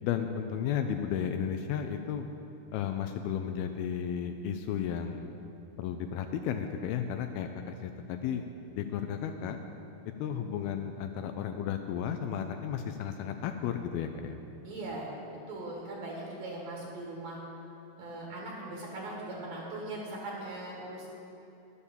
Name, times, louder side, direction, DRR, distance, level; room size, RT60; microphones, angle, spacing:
voice 1, 0.0-2.3 2.7-5.3 5.8-8.4 8.7-9.6 10.2-14.4, left 8 dB, 80° left, 6 dB, 2.4 m, -33 dB
voice 2, 14.6-15.1 15.5-17.4 18.0-21.1, right 2 dB, 65° right, -3 dB, 3.1 m, -40 dB
11.5 x 8.3 x 7.1 m, 2.9 s
omnidirectional pair, 4.5 m